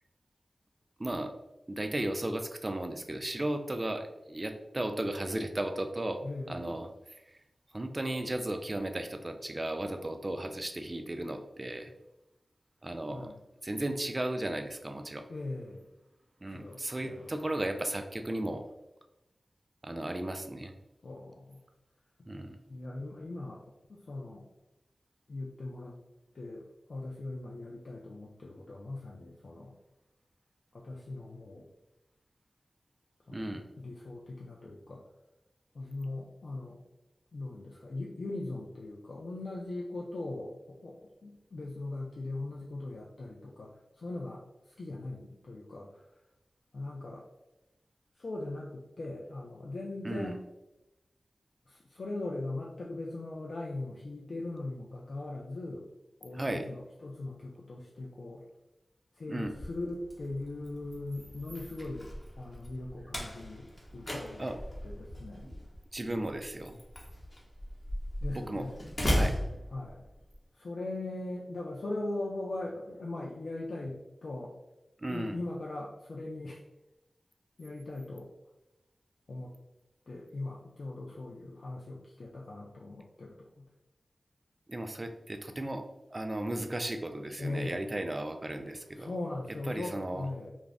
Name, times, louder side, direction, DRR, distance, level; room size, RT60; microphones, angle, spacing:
voice 1, 1.0-1.3 1.7-6.2 6.5-6.9 7.7-11.9 12.8-13.3 13.6-15.3 16.4-18.6 19.8-20.7 22.3-22.6 33.3-33.6 50.0-50.3 56.3-56.7 59.3-59.5 64.4-64.6 65.4-65.6 65.9-66.8 68.3-68.7 69.1-69.4 75.0-75.4 84.7-85.9 86.1-89.1 89.7-90.3, right 1 dB, 30° right, 7 dB, 0.3 m, -35 dB
voice 2, 6.2-6.8 13.1-13.4 15.3-15.9 16.5-17.3 21.0-21.6 22.7-23.6 23.9-24.4 25.3-26.0 26.3-26.6 26.9-29.7 30.7-31.7 33.3-35.0 35.7-36.8 37.3-40.9 41.2-43.7 44.0-44.4 44.8-46.0 46.7-47.2 48.2-50.4 51.7-55.9 56.2-58.4 59.2-62.1 62.3-63.7 63.9-64.5 64.8-65.5 68.2-68.8 69.7-70.0 70.6-74.5 75.1-76.6 77.6-78.3 79.3-79.5 80.1-83.7 87.4-87.9 89.0-90.5, left 2 dB, 75° left, -3 dB, 0.4 m, -40 dB
Slam, 59.6-70.3, equal, 40° left, 0.8 m, -37 dB
2.5 x 2.0 x 3.3 m, 0.92 s
wide cardioid pair, 55°, 0 cm